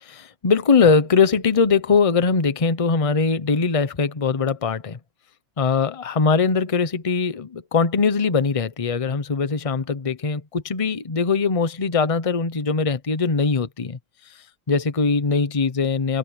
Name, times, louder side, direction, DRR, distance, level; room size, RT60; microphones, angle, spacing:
voice 1, 0.0-5.0 5.6-14.0 14.7-16.2, left 5 dB, 25° left, 0.8 m, -21 dB
open air
omnidirectional pair, 2.0 m